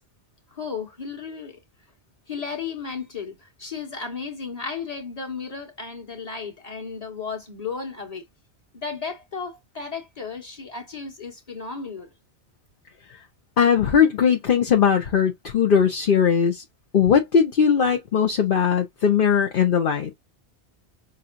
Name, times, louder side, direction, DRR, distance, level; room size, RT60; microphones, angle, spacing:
voice 1, 0.5-1.6 2.3-8.2 8.7-12.1, left 5 dB, 35° left, 1.6 m, -34 dB
voice 2, 13.6-16.6 16.9-20.1, left 7 dB, 55° left, 1.0 m, -19 dB
6.4 x 2.8 x 2.5 m
omnidirectional pair, 1.2 m